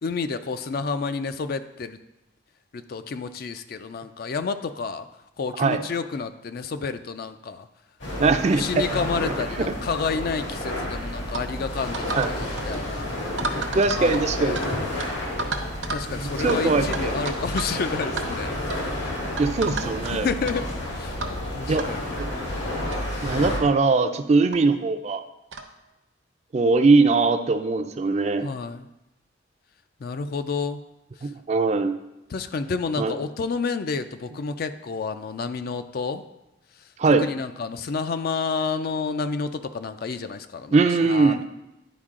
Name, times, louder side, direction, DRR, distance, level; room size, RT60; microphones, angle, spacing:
voice 1, 0.0-2.0 2.7-5.1 5.4-7.7 8.5-13.1 13.5-13.7 13.9-14.1 14.4-14.6 15.9-18.9 20.0-20.6 20.9-21.2 21.6-22.0 28.4-28.9 30.0-30.8 32.3-36.2 37.2-40.8 41.1-41.5, left 4 dB, 55° left, 10 dB, 0.4 m, -30 dB
sound 1, 8.0-23.6, left 1 dB, 75° left, 1.9 m, -30 dB
voice 2, 8.2-8.8 9.6-9.7 12.1-12.3 13.7-14.6 16.1-17.1 19.4-20.3 21.7-21.9 23.2-25.2 26.5-28.5 31.2-32.0 33.0-33.1 37.0-37.3 40.7-41.5, right 3 dB, 35° right, 9 dB, 0.4 m, -21 dB
sound 2, 11.3-11.5 11.9-12.3 12.6-12.8 13.4-14.7 15.0-15.1 15.4-16.1 16.5-16.6 16.9-17.7 18.0-18.2 18.7-18.9 19.4-20.1 20.5-20.6 21.2-21.4 21.8-21.9 22.6-22.7 22.9-23.0 23.5-23.6 24.5-24.6 25.5-25.7, right 3 dB, 75° right, 0.8 m, -32 dB
10.0 x 4.5 x 3.7 m, 0.95 s
head